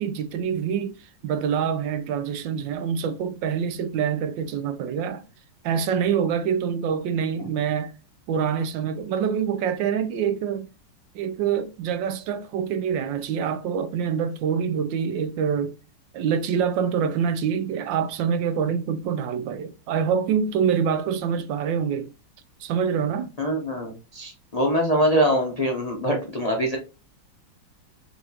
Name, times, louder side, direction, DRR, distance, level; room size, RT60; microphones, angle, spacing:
voice 1, 0.0-5.2 5.6-7.9 8.3-10.7 11.1-15.7 16.1-22.1 22.6-23.3, right 7 dB, 75° right, 1.2 m, -25 dB
voice 2, 23.4-26.8, equal, 55° left, 0.4 m, -23 dB
4.2 x 3.6 x 2.8 m
omnidirectional pair, 2.2 m